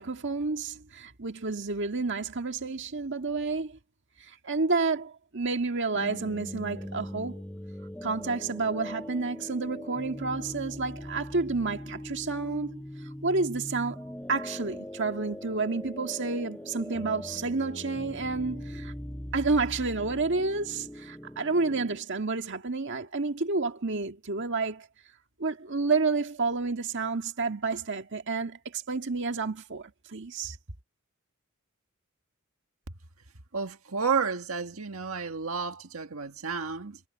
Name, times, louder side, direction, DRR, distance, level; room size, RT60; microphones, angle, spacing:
voice 1, 0.0-3.8 4.2-7.4 8.0-12.8 13.2-14.0 14.3-18.9 19.3-24.9 25.4-30.6, right 3 dB, 60° right, 1.8 m, -30 dB
sound 1, 5.9-22.0, left 1 dB, 5° left, 0.8 m, -41 dB
voice 2, 33.5-37.0, right 5 dB, 80° right, 1.7 m, -31 dB
head